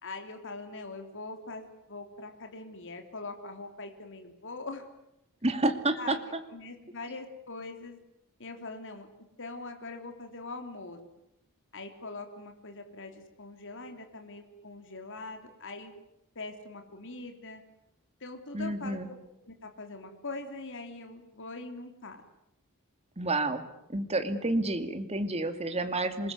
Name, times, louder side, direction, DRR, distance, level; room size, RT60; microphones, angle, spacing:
voice 1, 0.0-4.8 5.9-6.2 6.5-8.0 8.4-9.1 9.4-11.0 11.7-15.9 16.3-17.6 18.2-19.2 19.4-22.2, left 3 dB, 60° left, 5 dB, 3.4 m, -42 dB
voice 2, 5.4-6.4 18.5-19.1 23.2-23.6 23.9-26.3, right 2 dB, 30° right, 8 dB, 2.6 m, -29 dB
27.0 x 21.0 x 9.6 m, 0.80 s
head